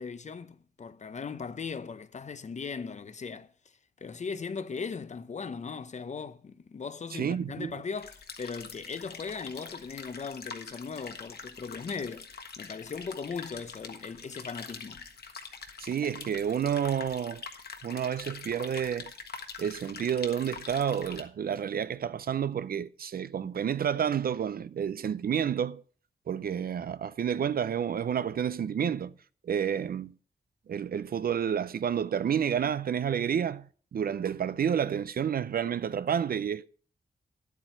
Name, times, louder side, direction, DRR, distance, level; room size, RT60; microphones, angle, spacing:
voice 1, 0.0-3.5 4.0-15.1, left 5 dB, 45° left, 0.7 m, -38 dB
voice 2, 7.1-7.7 15.8-17.4 17.8-19.1 19.6-25.8 26.3-29.1 29.4-30.1 30.7-33.7 33.9-36.7, right 8 dB, 65° right, 0.5 m, -30 dB
sound 1, 8.0-21.2, left 5 dB, 70° left, 1.5 m, -44 dB
11.0 x 8.3 x 4.5 m
wide cardioid pair, 125°, 17 cm